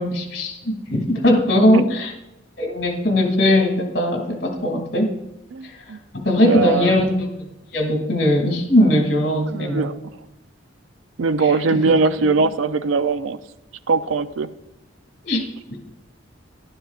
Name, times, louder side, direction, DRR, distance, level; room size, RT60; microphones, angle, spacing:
voice 1, 0.0-2.1 2.6-5.1 6.1-7.3 7.7-9.8 11.9-12.0 12.2-12.3 15.2-15.4, left 1 dB, 60° left, 2 dB, 2.3 m, -19 dB
voice 2, 5.5-6.0 6.4-6.9 9.5-10.0 11.2-13.4 13.9-14.5, right 4 dB, 90° right, 13 dB, 0.5 m, -21 dB
12.0 x 11.5 x 2.4 m, 0.93 s
head